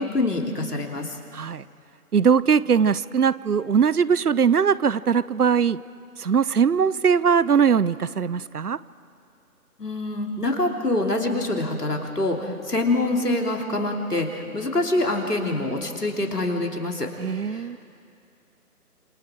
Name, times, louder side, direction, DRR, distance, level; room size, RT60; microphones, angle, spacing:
voice 1, 0.0-1.2 9.8-17.8, left 2 dB, 80° left, 2 dB, 3.2 m, -25 dB
voice 2, 1.3-1.6 2.1-5.8 6.2-8.8 17.2-17.8, right 6 dB, 75° right, 19 dB, 0.7 m, -20 dB
28.5 x 27.5 x 4.5 m, 2.5 s
figure-of-eight pair, 150°, 46 cm